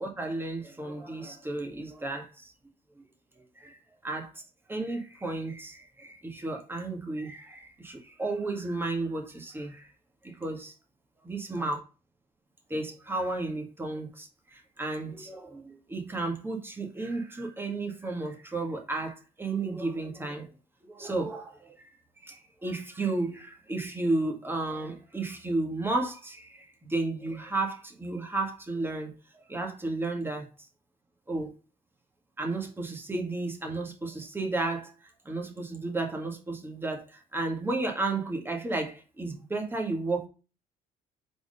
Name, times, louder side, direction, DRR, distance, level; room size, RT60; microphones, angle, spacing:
voice 1, 0.0-2.5 3.0-3.1 3.4-3.8 4.0-4.3 4.7-9.9 10.2-10.7 11.3-11.8 12.7-20.5 20.8-21.9 22.2-29.1 29.5-30.5 31.3-31.5 32.4-34.9 35.3-40.3, right 2 dB, 15° right, 1.8 m, -33 dB
4.6 x 4.3 x 5.1 m
cardioid pair, 110°, 17 cm